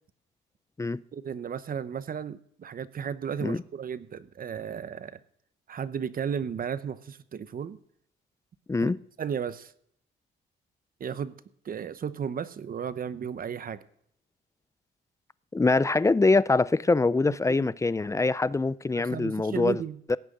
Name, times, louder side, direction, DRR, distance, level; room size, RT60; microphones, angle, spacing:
voice 1, 1.1-5.2 5.7-7.8 8.8-8.9 9.2-9.7 11.0-11.4 11.6-13.8 17.4-17.7 18.9-20.0, right 7 dB, 45° right, 0.8 m, -34 dB
voice 2, 15.5-19.8 20.1-20.2, left 3 dB, 15° left, 0.4 m, -24 dB
16.5 x 6.4 x 8.8 m
cardioid pair, 90°, 20 cm